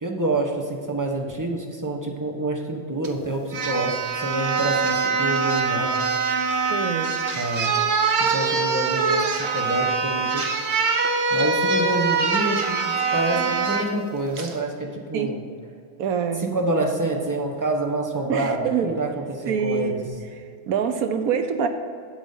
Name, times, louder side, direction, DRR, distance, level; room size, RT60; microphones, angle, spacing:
voice 1, 0.0-6.0 7.4-7.8 8.2-10.5 11.3-15.4 16.4-20.0, right 2 dB, 15° right, 1 dB, 0.9 m, -27 dB
sound 1, 3.0-3.1 3.5-13.9 14.4-14.5, right 4 dB, 55° right, 1.1 m, -23 dB
voice 2, 6.7-7.1 15.1-15.4 16.0-16.4 18.3-18.9 19.5-19.9 20.7-21.7, right 7 dB, 85° right, 8 dB, 1.2 m, -25 dB
8.2 x 8.1 x 5.5 m, 2.4 s
omnidirectional pair, 1.5 m